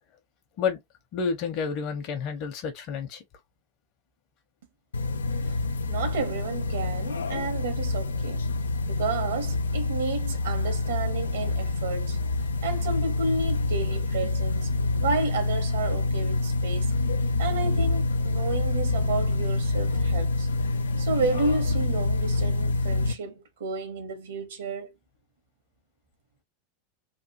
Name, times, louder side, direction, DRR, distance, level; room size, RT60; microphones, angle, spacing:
voice 1, 1.1-3.2, left 6 dB, 50° left, 1.0 m, -29 dB
sound 1, 4.9-23.1, left 2 dB, 85° left, 0.4 m, -27 dB
voice 2, 5.9-8.4 8.9-12.2 12.6-16.9 17.4-20.5 21.0-24.9, right 3 dB, 75° right, 1.3 m, -31 dB
3.3 x 2.4 x 3.0 m
hypercardioid pair, 90°, 0 cm